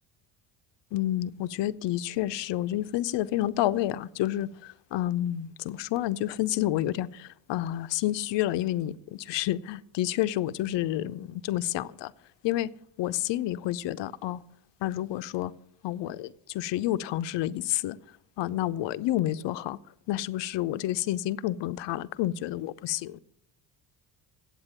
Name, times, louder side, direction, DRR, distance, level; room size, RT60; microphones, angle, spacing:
voice 1, 0.9-4.5 4.9-12.1 12.4-12.7 13.0-14.4 14.8-15.5 15.8-16.3 16.5-18.0 18.4-19.8 20.1-23.2, left 14 dB, 65° left, 15 dB, 0.6 m, -29 dB
8.1 x 8.1 x 8.9 m, 0.74 s
cardioid pair, 100°, 47 cm